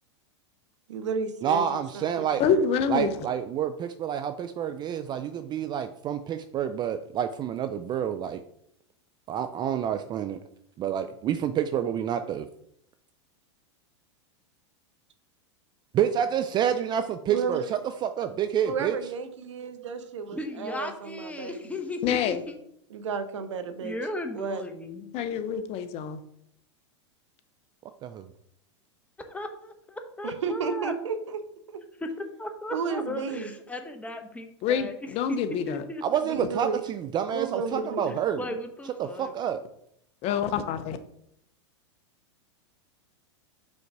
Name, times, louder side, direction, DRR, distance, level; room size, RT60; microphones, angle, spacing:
voice 1, 0.9-2.6 17.3-17.7 18.6-21.8 22.9-24.0 24.3-24.6 30.2-31.4 31.7-31.8 32.7-33.6 36.2-36.8 37.3-38.2, right 6 dB, 80° right, 9 dB, 0.8 m, -33 dB
voice 2, 1.4-2.4 2.9-8.4 9.3-10.4 10.8-12.5 15.9-17.6 18.0-19.0 28.0-28.3 36.0-38.4 39.0-39.6, right 9 dB, 30° right, 9 dB, 0.4 m, -28 dB
voice 3, 2.4-3.2 22.0-22.4 25.1-26.2 34.6-35.8 36.4-36.5 40.2-41.0, left 7 dB, 40° left, 12 dB, 0.7 m, -26 dB
voice 4, 20.3-22.5 23.8-25.1 29.3-30.9 32.0-32.1 32.4-35.4 35.6-36.0 38.1-39.3, left 1 dB, 10° left, 5 dB, 0.9 m, -36 dB
5.4 x 3.8 x 4.7 m, 0.73 s
hypercardioid pair, 105°, 15 cm